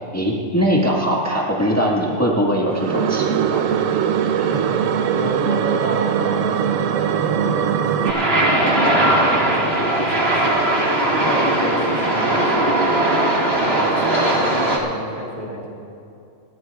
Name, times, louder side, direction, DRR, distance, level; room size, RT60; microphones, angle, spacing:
voice 1, 0.1-3.6, equal, 10° left, -4 dB, 1.6 m, -20 dB
sound 1, 2.7-8.1, right 8 dB, 90° right, 1.0 m, -21 dB
voice 2, 4.4-10.7 11.0-12.8 13.5-15.7, equal, 25° right, -4 dB, 2.4 m, -30 dB
sound 2, 8.0-14.8, right 1 dB, 50° right, 2.1 m, -19 dB
28.5 x 12.5 x 2.3 m, 2.5 s
omnidirectional pair, 1.3 m